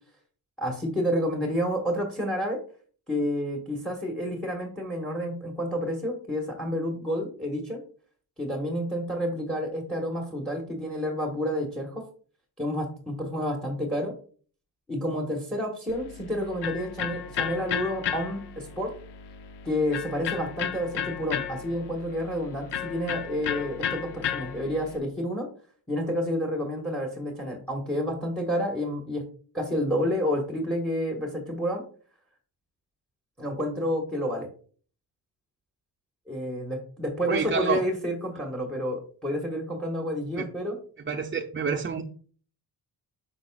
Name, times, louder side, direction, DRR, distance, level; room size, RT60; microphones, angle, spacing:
voice 1, 0.6-2.6 3.1-7.8 8.4-12.1 12.6-14.1 14.9-18.9 19.6-25.5 25.9-29.2 29.5-31.8 33.4-34.5 36.3-40.8, equal, ahead, 2 dB, 1.3 m, -29 dB
Electric guitar, 15.9-25.0, left 8 dB, 85° left, 0.9 m, -34 dB
voice 2, 37.3-37.8 40.4-40.5 41.0-42.0, right 6 dB, 30° right, 1 dB, 0.6 m, -28 dB
9.2 x 6.0 x 2.4 m, 0.43 s
wide cardioid pair, 155°, 40 cm